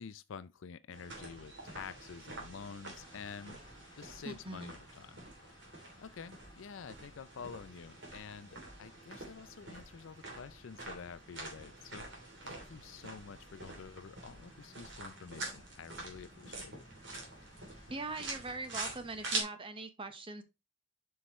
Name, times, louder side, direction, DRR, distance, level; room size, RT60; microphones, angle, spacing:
voice 1, 0.0-3.6 4.0-5.3 6.0-16.8, left 6 dB, 65° left, 0.4 m, -49 dB
sound 1, 0.9-19.4, right 2 dB, 55° right, 2.9 m, -46 dB
sound 2, 3.0-18.2, left 2 dB, 20° left, 2.0 m, -62 dB
voice 2, 4.2-4.8 17.9-20.4, right 3 dB, 25° right, 1.0 m, -42 dB
7.9 x 5.7 x 3.1 m
head